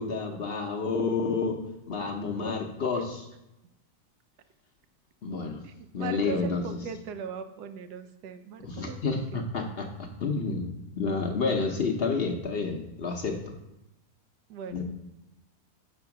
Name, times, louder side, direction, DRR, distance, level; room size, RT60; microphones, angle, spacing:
voice 1, 0.0-3.3 5.2-5.6 5.9-6.6 8.6-10.7 11.0-13.5 14.7-14.8, left 4 dB, 55° left, 2 dB, 0.7 m, -30 dB
voice 2, 5.6-9.8 14.5-14.8, right 6 dB, 90° right, 9 dB, 1.2 m, -40 dB
5.9 x 4.4 x 5.8 m, 0.90 s
omnidirectional pair, 1.7 m